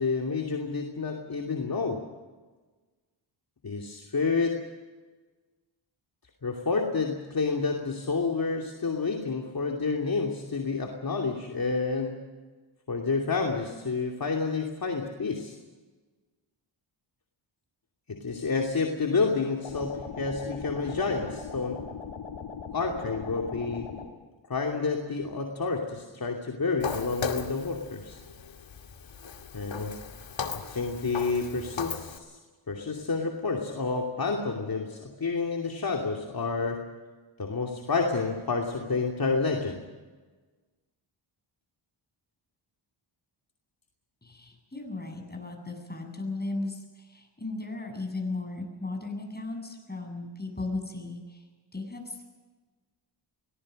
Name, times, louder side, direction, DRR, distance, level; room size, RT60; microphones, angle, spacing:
voice 1, 0.0-2.0 3.6-4.6 6.4-12.2 12.9-15.6 18.1-21.8 22.7-23.9 24.5-28.2 29.5-29.9 30.7-32.4 32.7-36.9 37.4-39.8, left 4 dB, 45° left, 1 dB, 2.8 m, -29 dB
sound 1, 19.6-24.1, left 6 dB, 85° left, 2.9 m, -39 dB
Walk footsteps, 26.8-32.2, left 5 dB, 65° left, 2.4 m, -37 dB
voice 2, 44.2-51.4 51.7-52.2, left 2 dB, 20° left, 3 dB, 7.9 m, -36 dB
23.5 x 19.0 x 6.5 m, 1.3 s
cardioid pair, 65°, 49 cm